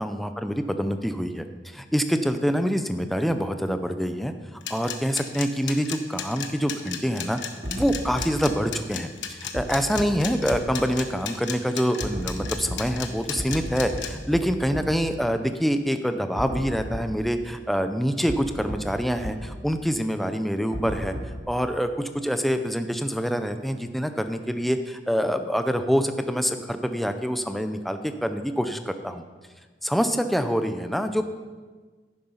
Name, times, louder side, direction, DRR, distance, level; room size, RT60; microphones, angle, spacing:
voice 1, 0.0-7.4 7.7-21.1 21.5-29.2 29.8-31.4, equal, ahead, 8 dB, 0.6 m, -26 dB
sound 1, 4.6-14.1, left 9 dB, 90° left, 1.1 m, -33 dB
sound 2, 7.6-7.9 8.2-8.3 9.5-9.6 10.0-10.1 10.5-10.6 12.0-12.8 13.4-13.6 13.9-14.0 14.3-14.4 14.7-14.8 16.4-16.6 16.9-17.0 18.3-18.4 18.7-18.8 19.2-19.3 20.7-21.4, equal, 50° right, 2.9 m, -32 dB
10.5 x 9.1 x 5.6 m, 1.4 s
head